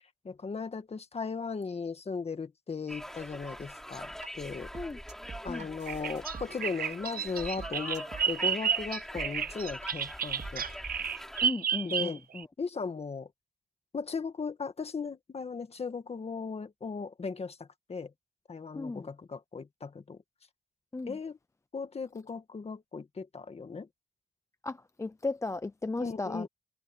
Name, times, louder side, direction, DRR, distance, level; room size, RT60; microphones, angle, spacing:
voice 1, 0.2-4.7 5.4-10.7 11.8-12.2 12.6-13.3 13.9-18.1 18.5-20.2 21.0-21.4 21.7-23.9 26.0-26.5, left 5 dB, 40° left, 1.8 m, -37 dB
Conversation, 2.9-11.5, equal, 5° left, 6.2 m, -43 dB
sound 1, 4.2-4.3 4.7-7.1 7.4-8.5 9.1-9.3 9.9-10.0 10.4-10.7, right 5 dB, 50° right, 3.9 m, -46 dB
Bird vocalization bird call bird song, 5.9-12.4, right 7 dB, 75° right, 0.9 m, -31 dB
voice 2, 11.4-12.5 18.7-19.1 20.9-21.2 24.6-26.5, left 3 dB, 20° left, 0.6 m, -36 dB
wide cardioid pair, 140°, 15 cm